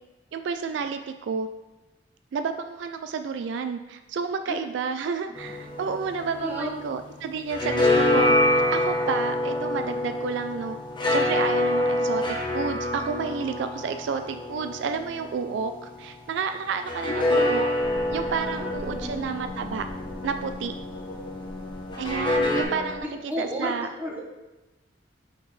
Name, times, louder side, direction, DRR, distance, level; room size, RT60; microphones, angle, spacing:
voice 1, 0.3-1.5 2.3-8.3 8.7-10.8 11.1-17.7 18.1-19.9 20.2-20.7 22.0-23.9, right 5 dB, 70° right, 8 dB, 0.3 m, -30 dB
sound 1, 5.3-7.0 7.3-16.0 16.8-20.9 21.9-22.6, left 1 dB, 25° left, 1.0 m, -26 dB
voice 2, 6.4-6.7 17.0-17.4 18.5-19.3 23.0-24.2, equal, 10° right, -2 dB, 1.1 m, -33 dB
sound 2, 17.8-23.0, left 2 dB, 60° left, 1.1 m, -37 dB
6.1 x 5.8 x 3.2 m, 1.1 s
head